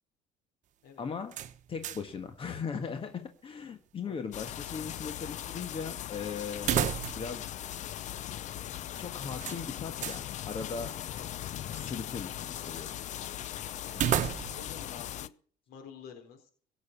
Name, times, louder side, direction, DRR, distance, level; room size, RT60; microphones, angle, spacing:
voice 1, 1.0-1.3 1.7-7.5 9.0-11.0 11.7-12.9, left 6 dB, 35° left, 7 dB, 1.6 m, -38 dB
sound 1, 1.3-2.2 2.5-2.6 6.6-7.4 7.7-7.8 9.4-10.3 13.9-14.8, right 10 dB, 55° right, 1.0 m, -32 dB
voice 2, 4.0-4.4 14.6-15.3 15.7-16.5, left 7 dB, 85° left, 3 dB, 4.1 m, -49 dB
sound 2, 4.3-15.3, left 12 dB, 50° left, 0.7 m, -39 dB
17.0 x 6.6 x 8.3 m, 0.44 s
cardioid pair, 115°, 15 cm